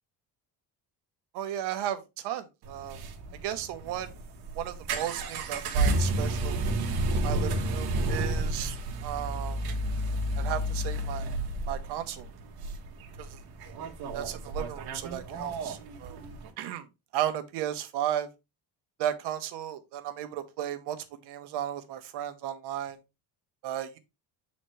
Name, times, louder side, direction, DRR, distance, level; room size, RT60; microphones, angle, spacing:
voice 1, 1.3-3.0 3.4-4.1 4.6-6.6 7.2-8.8 9.0-9.6 10.4-11.3 11.7-12.3 13.2-13.3 14.1-16.2 16.6-16.9 17.1-18.3 19.0-23.0 23.6-24.0, right 11 dB, 85° right, 1.0 m, -34 dB
sound 1, 2.6-16.5, right 1 dB, 65° right, 1.3 m, -31 dB
7.6 x 4.2 x 3.1 m
cardioid pair, 175°, 39 cm